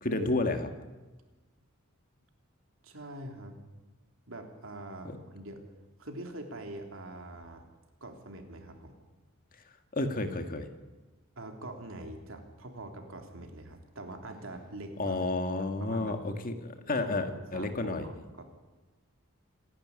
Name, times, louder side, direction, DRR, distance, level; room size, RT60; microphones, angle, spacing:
voice 1, 0.0-0.7 5.0-5.2 9.9-10.7 15.0-18.1, left 2 dB, 40° left, 7 dB, 2.0 m, -31 dB
voice 2, 2.8-3.6 4.3-5.6 6.0-7.7 8.0-8.9 11.4-15.2 15.6-16.2 17.0-18.4, right 1 dB, 65° right, 4 dB, 3.4 m, -44 dB
27.5 x 11.5 x 9.7 m, 1.2 s
head